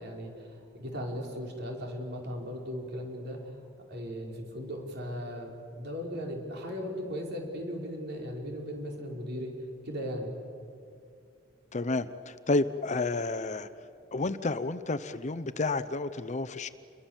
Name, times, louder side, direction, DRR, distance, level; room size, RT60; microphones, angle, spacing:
voice 1, 0.0-3.6 3.9-9.5 9.8-10.4, equal, 60° right, 0 dB, 5.0 m, -37 dB
voice 2, 11.7-13.7 14.1-16.7, left 3 dB, 40° left, 13 dB, 0.8 m, -30 dB
29.0 x 22.5 x 7.4 m, 2.4 s
head